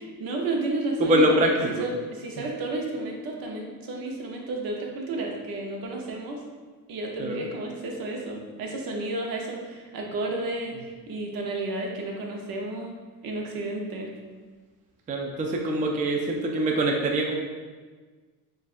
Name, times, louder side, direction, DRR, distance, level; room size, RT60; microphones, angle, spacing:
voice 1, 0.2-1.4 1.6-6.4 6.9-13.0 13.2-14.1, right 2 dB, 65° right, 0 dB, 0.9 m, -32 dB
voice 2, 1.0-1.9 7.2-7.5 15.1-17.4, right 1 dB, 20° right, 1 dB, 0.4 m, -24 dB
6.8 x 2.6 x 2.5 m, 1.4 s
cardioid pair, 125°, 38 cm